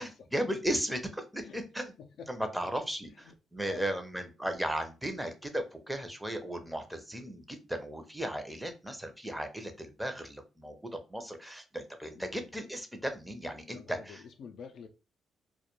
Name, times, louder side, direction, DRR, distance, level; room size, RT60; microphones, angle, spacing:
voice 1, 0.0-1.9 2.3-14.2, right 1 dB, 5° right, 0.6 m, -36 dB
voice 2, 2.0-2.4 3.1-3.9 12.1-12.5 13.7-14.9, left 6 dB, 70° left, 0.4 m, -48 dB
2.2 x 2.1 x 2.9 m
supercardioid pair, 55°, 0 cm